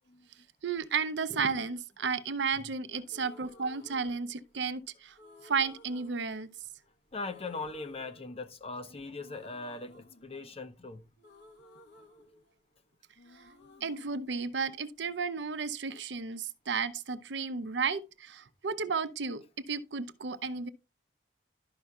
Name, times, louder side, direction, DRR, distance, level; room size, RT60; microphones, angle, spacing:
voice 1, 0.6-5.2 5.4-6.5 13.3-13.4 13.8-20.7, right 5 dB, 70° right, 0.7 m, -33 dB
sound 1, 3.1-4.7 5.2-6.9 7.2-8.8 9.2-12.9 13.2-15.2, left 1 dB, 65° left, 1.1 m, -57 dB
voice 2, 7.1-11.0 20.5-20.7, left 3 dB, 35° left, 0.7 m, -40 dB
12.0 x 5.5 x 2.4 m
head